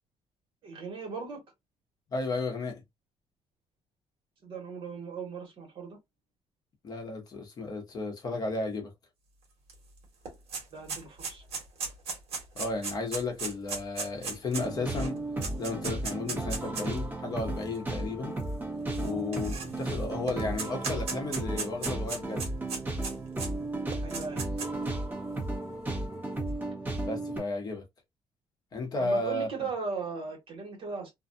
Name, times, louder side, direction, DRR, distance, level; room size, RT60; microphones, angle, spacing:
voice 1, 0.6-1.4 4.4-6.0 10.7-11.4 19.0-19.2 24.0-24.5 29.0-31.1, right 4 dB, 55° right, 1.3 m, -38 dB
voice 2, 2.1-2.8 6.8-8.9 12.5-15.2 15.6-18.3 19.0-22.5 27.0-27.8 28.7-29.5, left 3 dB, 40° left, 0.9 m, -33 dB
sound 1, 9.7-9.8 10.0-17.0 17.7-17.8 18.9-19.9 20.3-23.5 23.9-24.9, right 4 dB, 75° right, 1.2 m, -36 dB
sound 2, 14.5-27.4, right 2 dB, 20° right, 1.0 m, -34 dB
2.6 x 2.3 x 2.5 m
cardioid pair, 180°, 10 cm